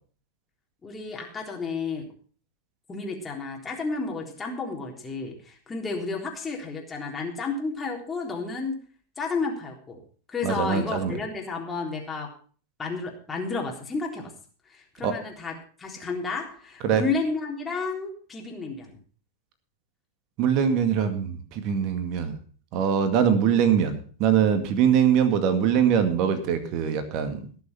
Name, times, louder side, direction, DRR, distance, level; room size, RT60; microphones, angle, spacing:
voice 1, 0.8-2.1 2.9-8.8 9.2-10.0 10.3-12.3 12.8-14.3 14.7-19.0, left 4 dB, 15° left, 0 dB, 3.7 m, -32 dB
voice 2, 10.4-11.2 15.0-15.1 16.8-17.0 20.4-22.4 22.7-27.4, right 8 dB, 40° right, 9 dB, 2.1 m, -23 dB
18.5 x 7.1 x 6.0 m, 0.42 s
figure-of-eight pair, 90°, 0 cm